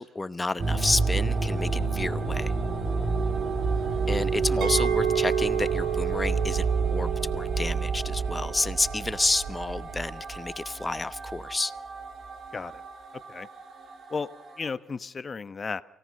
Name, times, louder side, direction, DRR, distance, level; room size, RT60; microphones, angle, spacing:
voice 1, 0.0-2.5 4.1-11.7, left 2 dB, 20° left, 14 dB, 0.9 m, -30 dB
sound 1, 0.6-14.7, right 4 dB, 60° right, 5.2 m, -29 dB
Chink clink, 4.6-9.8, right 12 dB, 85° right, 2.1 m, -33 dB
voice 2, 14.6-15.8, left 4 dB, 35° left, 13 dB, 1.2 m, -34 dB
28.5 x 18.0 x 6.6 m, 0.78 s
cardioid pair, 90°, 0 cm